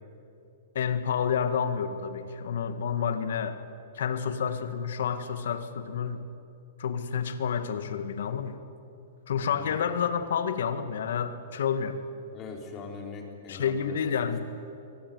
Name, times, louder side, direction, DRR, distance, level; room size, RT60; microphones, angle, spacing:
voice 1, 0.8-3.6 4.0-6.2 6.8-8.6 9.3-12.0 13.5-14.4, left 7 dB, 75° left, 10 dB, 1.8 m, -29 dB
voice 2, 9.5-10.0 12.3-14.4, left 4 dB, 30° left, 2 dB, 4.3 m, -42 dB
23.5 x 18.5 x 9.6 m, 2.8 s
hypercardioid pair, 140°, 0 cm